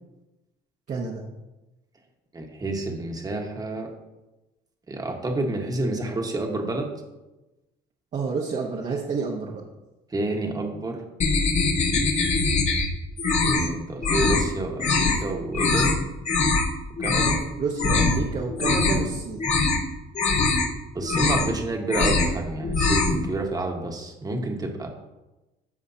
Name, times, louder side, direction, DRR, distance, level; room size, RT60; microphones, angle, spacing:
voice 1, 0.9-1.2 8.1-9.6 17.6-19.4, right 4 dB, 45° right, -3 dB, 1.2 m, -29 dB
voice 2, 2.3-3.9 4.9-6.9 10.1-11.0 13.4-16.0 17.0-17.4 20.9-24.9, right 2 dB, 20° right, 2 dB, 1.4 m, -29 dB
sound 1, 11.2-12.9 13.2-13.7 14.0-14.4 14.8-15.2 15.5-15.9 16.3-16.7 17.0-17.4 17.8-18.2 18.5-19.1 19.4-19.8 20.2-20.7 21.0-21.6 21.9-22.3 22.6-23.2, left 3 dB, 45° left, 1.3 m, -22 dB
13.5 x 5.0 x 2.8 m, 1.0 s
cardioid pair, 110°, 17 cm